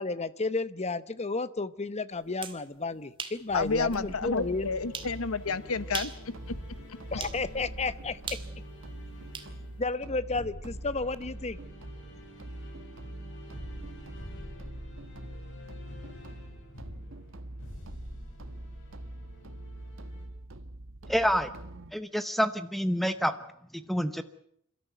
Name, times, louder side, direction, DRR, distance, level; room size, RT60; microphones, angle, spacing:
voice 1, 0.0-4.7 7.1-8.4 9.8-11.6, left 3 dB, 30° left, 15 dB, 0.9 m, -32 dB
sound 1, 2.2-2.6 3.2-3.4 3.9-4.0 4.9-5.2 5.8-6.2 7.2-7.4 8.3-9.5, right 5 dB, 25° right, 2.1 m, -38 dB
voice 2, 3.5-6.1, left 4 dB, 85° left, 15 dB, 1.0 m, -30 dB
sound 2, 3.5-20.3, left 1 dB, 60° left, 7.2 m, -47 dB
sound 3, 4.0-21.9, right 1 dB, 65° right, 1.3 m, -44 dB
voice 3, 21.1-21.5 21.9-23.3 23.9-24.2, equal, ahead, 11 dB, 0.8 m, -27 dB
28.5 x 13.0 x 9.3 m, 0.72 s
head